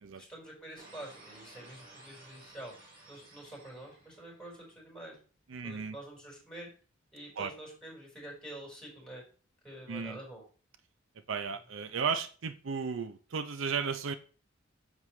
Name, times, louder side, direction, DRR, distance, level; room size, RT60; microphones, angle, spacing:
voice 1, 0.1-2.7 3.1-5.2 5.6-6.7 7.1-9.2 9.6-10.4, right 1 dB, 5° left, -2 dB, 4.7 m, -47 dB
sound 1, 0.7-4.9, right 2 dB, 50° right, 4.3 m, -55 dB
voice 2, 5.5-6.0 7.4-7.5 9.9-10.2 11.3-14.1, right 5 dB, 70° right, 11 dB, 0.6 m, -34 dB
9.5 x 7.4 x 3.2 m, 0.38 s
head